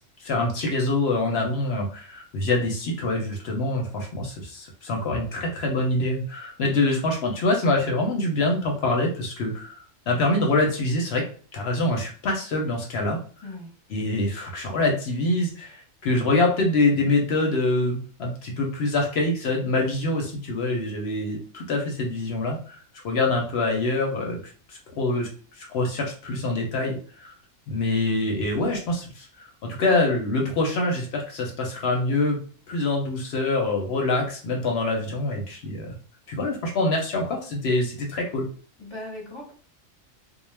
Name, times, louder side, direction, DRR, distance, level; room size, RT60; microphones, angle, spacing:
voice 1, 0.2-11.2 11.5-13.2 13.9-22.8 23.0-24.4 24.7-25.3 25.6-27.3 27.7-36.0 36.3-38.5, left 2 dB, 60° left, 1 dB, 0.8 m, -25 dB
voice 2, 38.8-39.5, left 1 dB, 25° left, -2 dB, 0.7 m, -38 dB
2.3 x 2.0 x 3.2 m, 0.42 s
omnidirectional pair, 1.4 m